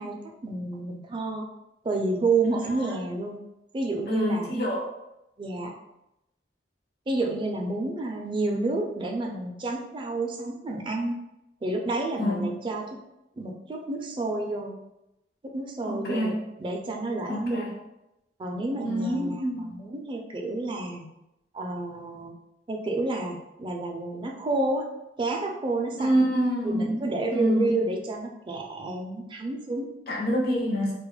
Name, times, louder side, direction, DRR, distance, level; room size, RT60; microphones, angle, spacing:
voice 1, 0.0-1.5 1.8-3.4 3.7-4.5 5.4-5.7 7.1-11.2 11.6-13.0 13.4-14.7 15.4-17.7 18.4-21.0 21.5-22.3 22.7-24.9 25.2-26.3 26.6-29.9, right 2 dB, 30° right, 1 dB, 0.3 m, -30 dB
voice 2, 4.1-4.9 12.2-12.5 15.8-16.4 17.3-17.7 18.8-19.7 26.0-27.0 27.3-27.8 30.1-30.9, equal, 60° left, -2 dB, 0.7 m, -26 dB
2.3 x 2.1 x 3.0 m, 0.89 s
head